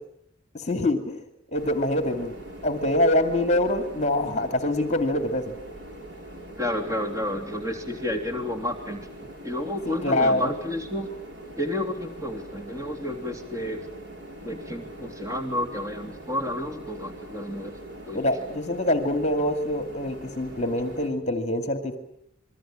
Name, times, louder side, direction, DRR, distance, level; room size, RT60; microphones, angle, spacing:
voice 1, 0.5-1.3 1.5-2.3 2.6-5.5 9.9-10.5 18.1-22.0, left 1 dB, 35° left, 7 dB, 2.5 m, -25 dB
sound 1, 1.5-21.1, right 1 dB, 65° right, 6.7 m, -42 dB
voice 2, 6.6-9.1 9.4-11.1 11.6-13.9 14.4-17.8 18.1-18.2, left 1 dB, 15° right, 3 dB, 3.3 m, -31 dB
28.0 x 23.5 x 8.9 m, 0.73 s
head